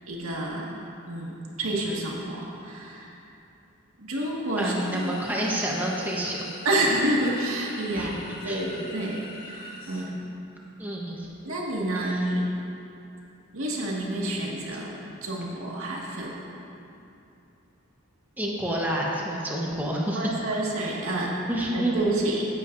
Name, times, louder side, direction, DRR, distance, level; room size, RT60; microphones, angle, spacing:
voice 1, 0.1-0.8 1.1-3.1 4.0-5.1 6.6-10.1 11.4-12.5 13.5-14.9 15.2-16.4 20.1-21.4 21.7-22.4, right 1 dB, 75° right, -3 dB, 1.9 m, -29 dB
sound 1, 4.6-10.0, left 2 dB, 45° left, 1.9 m, -44 dB
voice 2, 4.6-6.4 7.9-8.1 8.4-8.6 10.8-11.3 12.0-12.2 18.4-20.3 21.5-21.9, right 1 dB, 10° right, -4 dB, 1.1 m, -28 dB
16.0 x 11.0 x 2.6 m, 2.8 s
head